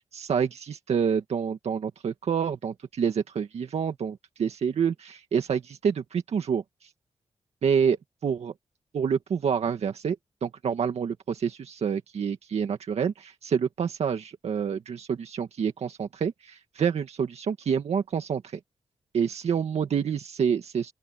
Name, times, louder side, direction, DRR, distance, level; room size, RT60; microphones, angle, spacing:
voice 1, 0.1-6.6 7.6-8.0 8.2-8.5 8.9-10.2 10.4-18.4 19.1-20.9, right 7 dB, 75° right, 1.9 m, -27 dB
open air
wide cardioid pair, 120°, 11 cm